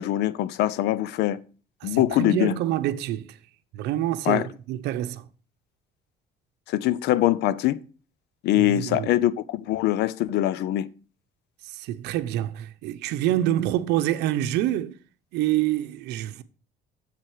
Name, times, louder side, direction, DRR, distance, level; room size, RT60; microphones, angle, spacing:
voice 1, 0.0-1.4 1.8-2.6 4.3-4.5 6.7-7.8 8.4-10.9, left 14 dB, 85° left, 0.7 m, -23 dB
voice 2, 1.8-3.3 3.7-5.2 8.6-9.1 11.8-14.9 15.3-16.4, right 13 dB, 85° right, 0.8 m, -26 dB
7.6 x 7.5 x 4.9 m
cardioid pair, 110°, 17 cm